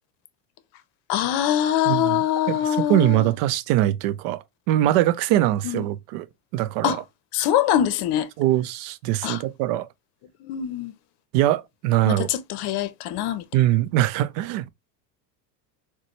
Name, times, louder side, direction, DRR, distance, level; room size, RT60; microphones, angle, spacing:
voice 1, 1.1-3.3 5.6-5.8 6.8-7.0 7.3-8.3 9.2-9.4 10.4-10.9 12.1-13.5, left 11 dB, 50° left, 0.7 m, -23 dB
voice 2, 1.9-6.3 6.5-7.0 8.4-9.9 11.3-12.3 13.5-14.7, right 14 dB, 65° right, 0.6 m, -22 dB
4.0 x 2.2 x 2.9 m
supercardioid pair, 95°, 50 cm